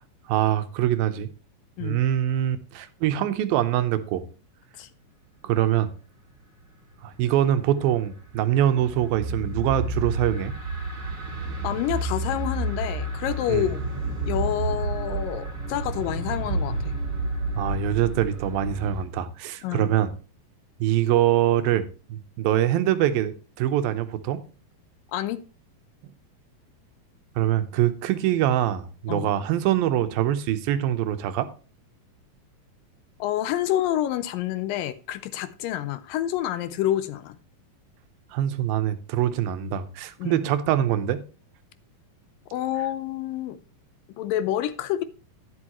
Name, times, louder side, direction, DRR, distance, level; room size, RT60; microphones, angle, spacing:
voice 1, 0.3-1.3 1.8-4.2 5.4-5.9 7.0-10.5 13.5-13.7 17.6-20.1 20.8-21.8 22.1-24.4 27.4-31.5 38.3-41.2, right 11 dB, 90° right, 2.7 m, -24 dB
sound 1, 7.6-19.0, right 2 dB, 40° right, 2.8 m, -30 dB
voice 2, 11.6-13.8 14.3-17.0 19.6-19.9 25.1-25.4 29.1-29.3 33.2-37.4 40.2-40.4 42.5-43.6 44.2-45.0, left 12 dB, 80° left, 2.4 m, -28 dB
11.0 x 10.5 x 3.0 m
omnidirectional pair, 4.1 m